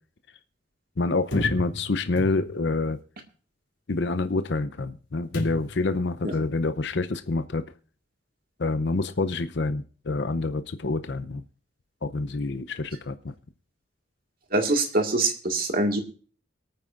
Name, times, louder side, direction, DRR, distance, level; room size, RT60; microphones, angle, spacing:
voice 1, 1.0-3.0 3.9-7.6 8.6-11.4 12.0-13.3, left 3 dB, 60° left, 11 dB, 0.7 m, -27 dB
sound 1, 1.3-2.8 5.3-5.9, equal, 80° left, 2.9 m, -33 dB
voice 2, 14.5-16.0, right 2 dB, 50° right, 4 dB, 1.9 m, -24 dB
24.0 x 9.0 x 2.5 m, 0.41 s
head